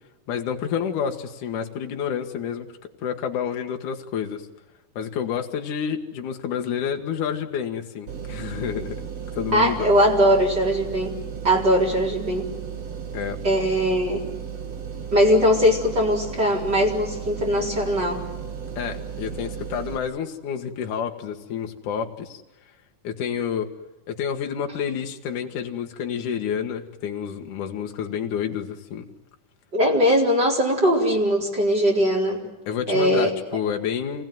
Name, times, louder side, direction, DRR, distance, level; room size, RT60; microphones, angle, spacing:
voice 1, 0.3-2.7 3.0-4.4 5.0-9.0 9.3-9.9 13.1-13.4 18.8-22.4 23.0-23.7 24.1-29.1 32.7-34.2, left 8 dB, 70° left, 4 dB, 3.1 m, -29 dB
sound 1, 8.1-20.0, right 7 dB, 55° right, 3.2 m, -35 dB
voice 2, 9.5-11.1 11.4-12.5 13.4-14.2 15.1-18.2 29.7-32.4 32.9-33.3, equal, 30° right, -1 dB, 4.7 m, -20 dB
27.5 x 19.5 x 9.3 m, 1.1 s
omnidirectional pair, 3.7 m